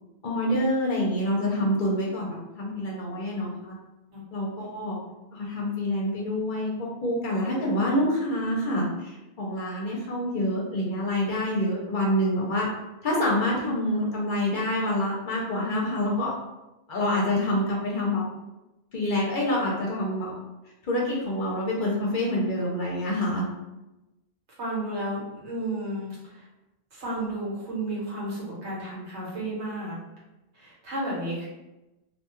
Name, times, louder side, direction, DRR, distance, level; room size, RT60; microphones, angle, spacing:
voice 1, 0.2-3.7 4.3-5.0 5.3-12.7 13.0-16.3 16.9-18.2 18.9-20.3 20.9-23.5, left 1 dB, 55° left, -3 dB, 0.7 m, -27 dB
voice 2, 24.6-26.4 26.9-30.0 30.5-31.5, right 1 dB, 85° right, -6 dB, 1.4 m, -32 dB
2.6 x 2.2 x 2.9 m, 1.0 s
omnidirectional pair, 1.1 m